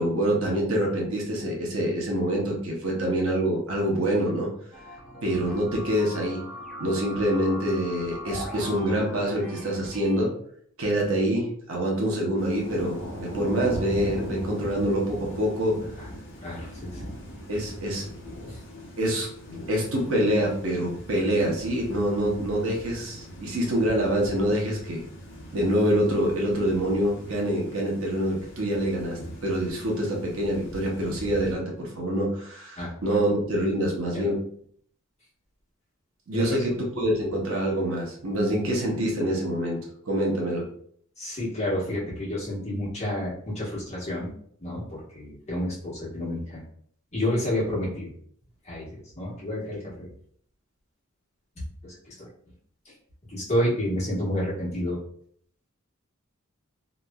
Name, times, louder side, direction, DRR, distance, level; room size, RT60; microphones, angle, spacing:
voice 1, 0.0-4.5 5.2-6.4 6.8-10.3 10.8-15.8 17.5-18.0 19.0-19.3 19.7-25.0 25.5-34.4 36.3-39.8 40.0-40.7, right 1 dB, 70° right, -1 dB, 0.8 m, -26 dB
sound 1, 4.7-10.2, left 1 dB, ahead, 0.5 m, -40 dB
Thunder / Rain, 12.4-31.5, equal, 60° left, 0.6 m, -40 dB
voice 2, 16.4-17.0 18.5-18.6 32.8-32.9 34.1-34.2 36.3-36.4 41.2-44.3 44.6-46.6 47.1-48.1 48.7-48.9 49.2-50.1 52.2-52.3 53.3-55.0, left 1 dB, 30° left, -7 dB, 1.2 m, -29 dB
3.0 x 2.5 x 2.2 m, 0.62 s
head